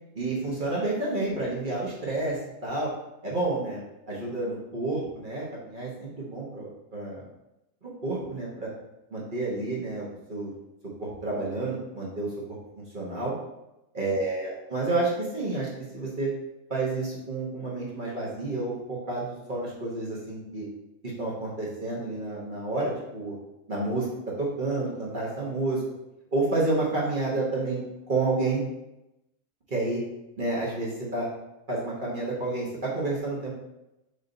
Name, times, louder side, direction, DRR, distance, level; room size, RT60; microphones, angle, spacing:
voice 1, 0.1-2.9 3.2-3.8 4.1-7.2 7.8-8.7 9.1-10.5 11.0-12.3 12.7-13.3 13.9-16.3 16.7-20.7 21.0-23.3 23.7-24.1 24.4-25.8 26.3-28.6 29.7-30.0 30.4-31.3 31.7-33.5, right 2 dB, 40° right, -5 dB, 1.1 m, -30 dB
5.2 x 2.7 x 3.9 m, 0.93 s
omnidirectional pair, 1.5 m